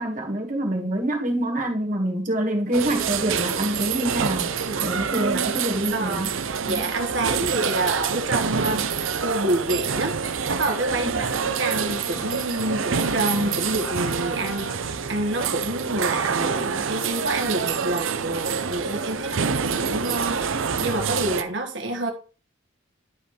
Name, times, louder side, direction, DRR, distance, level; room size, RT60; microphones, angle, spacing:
voice 1, 0.0-6.4 6.7-6.9 11.0-11.2, right 1 dB, 40° right, 0 dB, 1.7 m, -26 dB
sound 1, 2.7-21.4, right 6 dB, 80° right, 0.7 m, -26 dB
voice 2, 5.9-6.3 6.7-8.9 9.2-10.2 10.5-14.7 15.1-22.1, right 1 dB, 60° right, 3 dB, 1.6 m, -28 dB
Bowed string instrument, 10.9-15.2, left 2 dB, 85° left, 1.1 m, -40 dB
11.5 x 5.3 x 3.3 m, 0.37 s
head